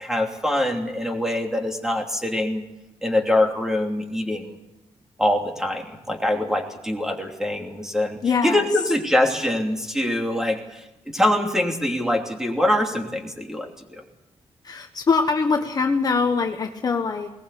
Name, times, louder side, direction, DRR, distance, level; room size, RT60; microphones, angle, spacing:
voice 1, 0.0-2.6 3.0-4.6 5.2-14.0, left 1 dB, 5° right, 2 dB, 3.0 m, -24 dB
voice 2, 8.2-8.7 14.6-17.3, left 4 dB, 35° left, 4 dB, 1.3 m, -23 dB
21.0 x 20.0 x 8.4 m, 0.93 s
wide cardioid pair, 180°, 11 cm